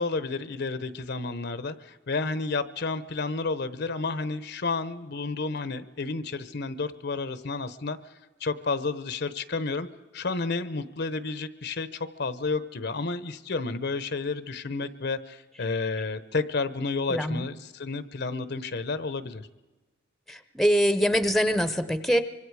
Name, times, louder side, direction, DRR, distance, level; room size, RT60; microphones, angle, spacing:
voice 1, 0.0-8.0 8.4-9.9 10.1-19.4, left 3 dB, 60° left, 13 dB, 0.9 m, -31 dB
voice 2, 17.1-17.5 20.3-22.2, equal, ahead, 10 dB, 0.8 m, -24 dB
25.0 x 24.5 x 4.8 m, 1.2 s
head